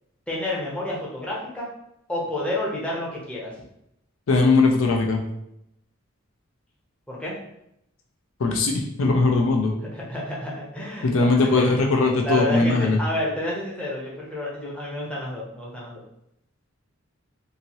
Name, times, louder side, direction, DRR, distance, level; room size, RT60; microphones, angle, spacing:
voice 1, 0.3-1.7 2.1-3.5 7.1-7.4 9.9-11.6 12.2-16.0, left 1 dB, 5° left, -5 dB, 0.7 m, -30 dB
voice 2, 4.3-5.2 8.4-9.7 11.0-13.0, left 3 dB, 70° left, 1 dB, 0.5 m, -20 dB
2.8 x 2.7 x 2.8 m, 0.80 s
head